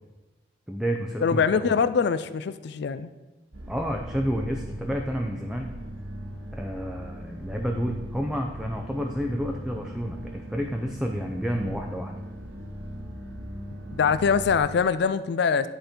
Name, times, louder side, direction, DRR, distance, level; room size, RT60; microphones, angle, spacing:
voice 1, 0.7-1.8 3.7-5.7 6.5-12.1, equal, 5° right, 1 dB, 0.5 m, -30 dB
voice 2, 1.2-3.1 13.9-15.7, left 6 dB, 60° left, 14 dB, 0.4 m, -23 dB
sound 1, 3.5-14.6, equal, 85° right, 1.5 m, -39 dB
10.5 x 4.3 x 5.2 m, 1.2 s
head